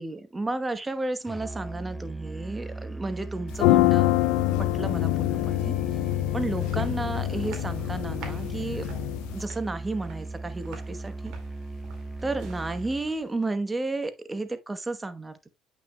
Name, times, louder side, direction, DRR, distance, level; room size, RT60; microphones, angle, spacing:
voice 1, 0.0-4.2 4.6-5.7 6.3-8.9 9.3-11.3 12.2-15.5, right 2 dB, 20° right, 1.0 m, -32 dB
Musical instrument, 1.2-13.1, right 2 dB, ahead, 0.5 m, -38 dB
sound 1, 3.5-9.4, left 18 dB, 75° left, 0.3 m, -25 dB
sound 2, 5.7-13.5, right 5 dB, 65° right, 2.1 m, -49 dB
8.5 x 5.9 x 2.2 m
hypercardioid pair, 60°, 0 cm